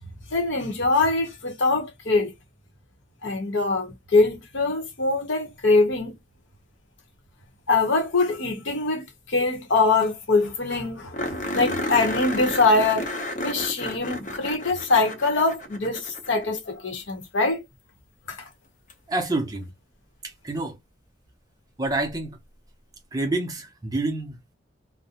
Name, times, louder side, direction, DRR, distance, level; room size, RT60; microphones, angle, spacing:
voice 1, 0.3-2.3 3.2-6.1 7.7-13.1 13.4-17.6 18.3-18.4, left 3 dB, 70° left, 0.8 m, -23 dB
sound 1, 9.8-9.9 10.0-10.1 10.4-10.5 11.1-16.6 18.9-19.0 21.8-21.9, left 1 dB, 40° left, 0.6 m, -32 dB
voice 2, 19.1-19.6 20.2-20.8 21.8-22.4 23.1-24.4, right 2 dB, 20° right, 0.5 m, -27 dB
2.4 x 2.0 x 2.7 m
head